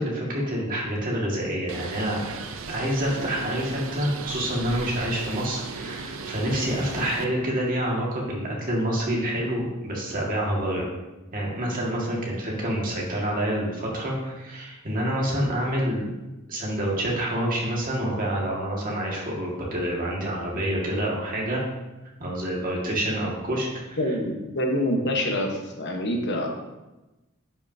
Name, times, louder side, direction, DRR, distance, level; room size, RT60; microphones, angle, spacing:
voice 1, 0.0-2.2 2.7-10.9 11.3-16.1 16.5-21.6 22.2-24.0, right 1 dB, 45° right, -3 dB, 2.0 m, -27 dB
Bird, 1.7-7.2, right 4 dB, 75° right, 0.6 m, -36 dB
voice 2, 24.0-26.5, left 1 dB, 60° left, 1 dB, 1.2 m, -26 dB
10.0 x 5.8 x 2.8 m, 1.1 s
head